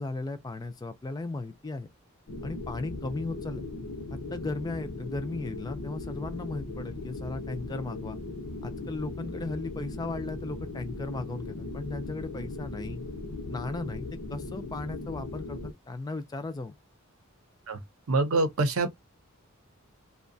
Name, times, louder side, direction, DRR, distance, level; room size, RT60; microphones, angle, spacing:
voice 1, 0.0-1.9 2.4-3.6 4.1-8.2 8.6-13.0 13.5-16.7, left 3 dB, 20° left, 0.3 m, -36 dB
sound 1, 2.3-15.7, left 2 dB, 80° left, 0.6 m, -38 dB
voice 2, 18.1-18.9, right 2 dB, 75° right, 0.7 m, -25 dB
2.6 x 2.2 x 2.6 m
head